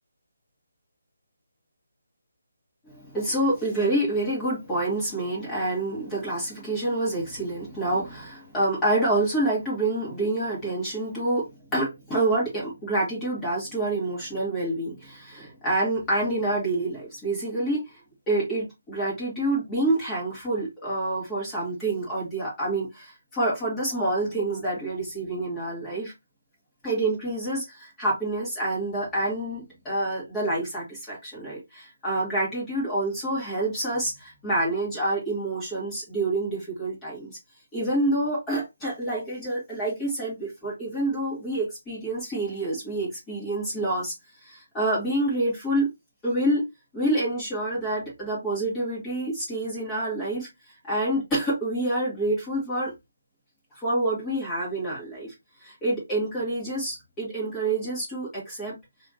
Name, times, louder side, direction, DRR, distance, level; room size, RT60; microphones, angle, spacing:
voice 1, 2.9-17.9 18.3-26.1 26.8-37.4 37.7-44.1 44.4-45.9 46.2-46.7 46.9-50.5 50.8-52.9 53.8-55.3 55.6-58.8, right 1 dB, 15° left, 2.7 m, -27 dB
4.8 x 3.5 x 2.7 m
figure-of-eight pair, 160°, 0 cm